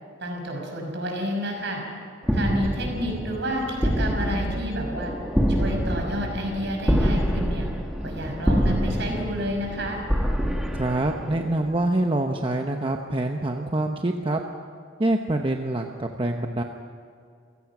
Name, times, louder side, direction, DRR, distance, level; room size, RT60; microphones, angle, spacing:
voice 1, 0.2-1.8 2.3-5.1 5.5-7.7 8.0-10.0, equal, 60° right, 1 dB, 5.9 m, -30 dB
sound 1, 2.2-11.7, equal, 5° right, 2.0 m, -26 dB
voice 2, 10.7-14.4 15.0-16.6, right 1 dB, 25° right, 3 dB, 0.9 m, -25 dB
29.0 x 17.0 x 6.1 m, 2.3 s
head